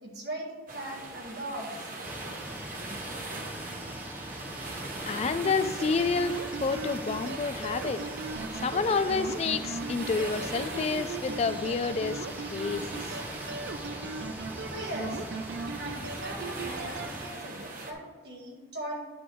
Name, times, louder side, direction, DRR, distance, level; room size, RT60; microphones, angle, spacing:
voice 1, 0.0-1.9 2.2-2.3 14.7-15.3 15.8-19.0, right 1 dB, 65° right, -1 dB, 1.8 m, -39 dB
sound 1, 0.7-17.9, right 2 dB, 50° right, 1.0 m, -41 dB
sound 2, 2.0-17.3, equal, 10° right, 0.6 m, -42 dB
voice 2, 5.1-8.0 8.6-13.0, left 4 dB, 35° left, 12 dB, 0.3 m, -29 dB
sound 3, 5.4-17.1, right 4 dB, 85° right, 0.5 m, -39 dB
9.5 x 3.3 x 6.1 m, 1.3 s
head